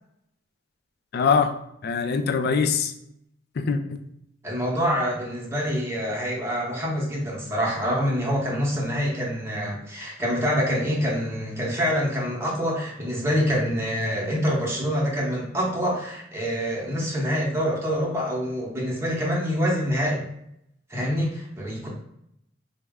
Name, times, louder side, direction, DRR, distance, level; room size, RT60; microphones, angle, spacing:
voice 1, 1.1-1.5 1.8-2.9 3.6-4.0, left 5 dB, 55° left, 8 dB, 0.4 m, -23 dB
voice 2, 4.4-20.2 20.9-21.9, equal, 15° right, -5 dB, 0.8 m, -26 dB
4.3 x 2.0 x 3.5 m, 0.76 s
head